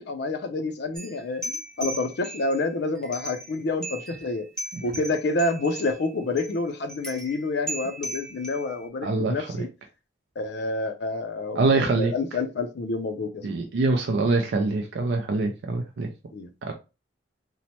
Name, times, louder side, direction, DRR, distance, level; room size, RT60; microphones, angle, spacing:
voice 1, 0.0-4.5 4.8-9.7 10.4-13.5 16.3-16.5, left 2 dB, 60° left, 0.4 m, -28 dB
sound 1, 0.9-2.6 3.0-3.6 3.8-4.3 4.6-6.0 6.4-6.5 6.9-8.9, right 1 dB, 5° left, 0.6 m, -37 dB
voice 2, 9.0-9.4 11.6-12.1 13.4-16.1 16.6-16.7, right 3 dB, 65° right, 0.4 m, -24 dB
3.0 x 2.1 x 2.8 m
head